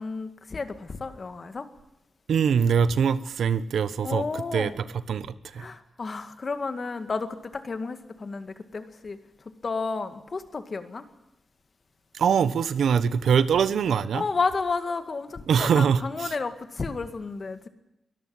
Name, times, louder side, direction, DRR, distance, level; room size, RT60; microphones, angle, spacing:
voice 1, 0.0-1.7 4.0-4.8 5.6-9.2 9.6-11.1 14.1-17.7, left 4 dB, 40° left, 9 dB, 2.0 m, -31 dB
voice 2, 2.3-4.2 4.5-5.6 12.1-14.2 15.5-16.3, right 7 dB, 90° right, 15 dB, 1.1 m, -23 dB
23.5 x 13.5 x 9.6 m, 0.90 s
wide cardioid pair, 125°, 0 cm